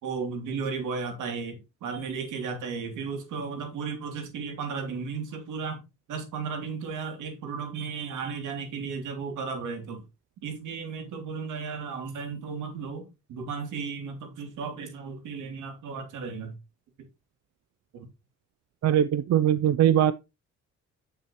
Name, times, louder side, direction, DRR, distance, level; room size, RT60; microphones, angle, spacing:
voice 1, 0.0-5.8 6.1-10.0 10.4-16.6 17.9-18.0, right 5 dB, 80° right, 3.0 m, -34 dB
voice 2, 18.8-20.1, right 10 dB, 60° right, 0.6 m, -21 dB
8.7 x 7.1 x 3.0 m
cardioid pair, 90°, 30 cm